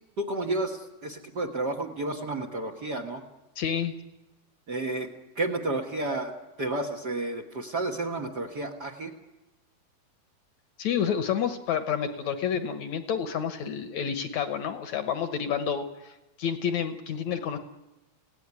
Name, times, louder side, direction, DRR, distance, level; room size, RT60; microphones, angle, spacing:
voice 1, 0.2-3.2 4.7-5.1 5.3-6.3 6.6-9.1, right 2 dB, 80° right, 3 dB, 0.9 m, -31 dB
voice 2, 3.6-3.9 10.8-17.6, left 8 dB, 65° left, 8 dB, 1.8 m, -29 dB
27.0 x 17.5 x 9.7 m, 1.1 s
omnidirectional pair, 4.4 m